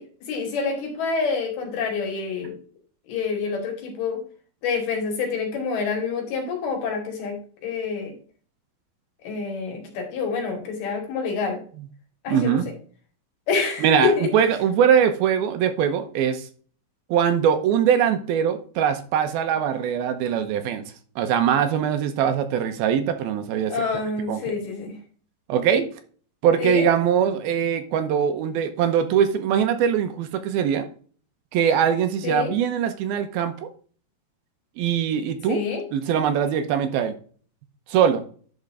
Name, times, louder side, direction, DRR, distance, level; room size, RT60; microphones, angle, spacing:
voice 1, 0.3-2.6 3.1-4.2 4.6-8.1 9.2-11.6 12.2-12.6 13.5-14.3 23.7-25.0 26.6-26.9 32.2-32.5 35.5-35.8, left 5 dB, 75° left, 2 dB, 4.3 m, -27 dB
voice 2, 12.3-12.7 13.8-16.5 17.1-20.8 21.2-23.7 24.3-24.5 25.5-25.9 26.4-30.9 31.5-33.7 34.8-35.6 35.9-37.2 37.9-38.2, right 8 dB, 80° right, 8 dB, 2.7 m, -22 dB
11.0 x 4.7 x 3.7 m, 0.43 s
omnidirectional pair, 4.4 m